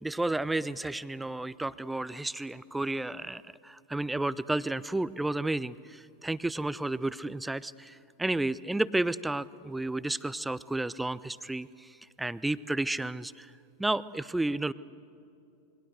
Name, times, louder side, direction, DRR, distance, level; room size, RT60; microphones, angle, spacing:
voice 1, 0.0-13.5 13.8-14.7, right 2 dB, 5° right, 17 dB, 0.6 m, -32 dB
27.5 x 22.5 x 7.8 m, 2.6 s
figure-of-eight pair, 90°, 0 cm